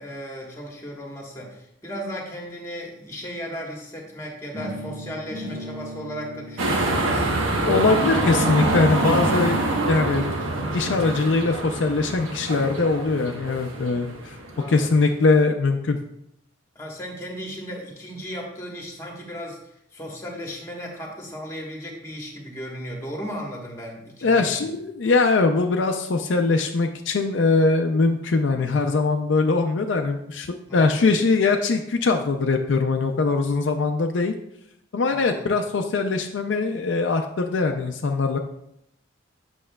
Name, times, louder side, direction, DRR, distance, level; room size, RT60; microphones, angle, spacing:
voice 1, 0.0-7.3 9.6-9.9 14.3-14.9 16.7-19.6 19.9-24.7 30.7-31.1 35.1-35.6, equal, 15° left, 0 dB, 1.2 m, -36 dB
sound 1, 4.5-10.5, equal, 40° right, 1.2 m, -40 dB
sound 2, 6.6-15.0, right 2 dB, 85° right, 1.1 m, -25 dB
voice 2, 7.7-9.6 9.9-10.3 10.7-14.4 14.7-16.0 24.2-30.5 30.7-34.3 34.9-38.4, left 3 dB, 65° left, 4 dB, 0.4 m, -21 dB
8.6 x 6.2 x 2.2 m, 0.78 s
head